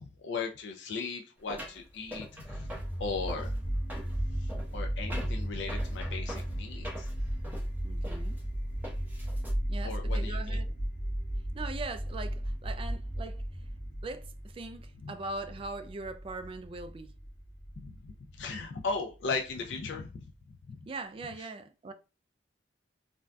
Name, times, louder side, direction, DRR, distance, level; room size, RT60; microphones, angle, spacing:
voice 1, 0.0-2.7 3.0-3.5 4.4-7.1 9.8-10.6 17.8-20.2 20.7-20.8, left 4 dB, 90° left, 0.4 m, -37 dB
sound 1, 1.5-9.5, equal, 10° right, 0.9 m, -45 dB
sound 2, 2.4-19.4, equal, 45° left, 0.8 m, -35 dB
voice 2, 7.8-8.4 9.7-10.8 11.5-13.4 14.0-17.1 20.9-21.9, right 3 dB, 30° right, 0.3 m, -41 dB
3.4 x 2.5 x 2.2 m
head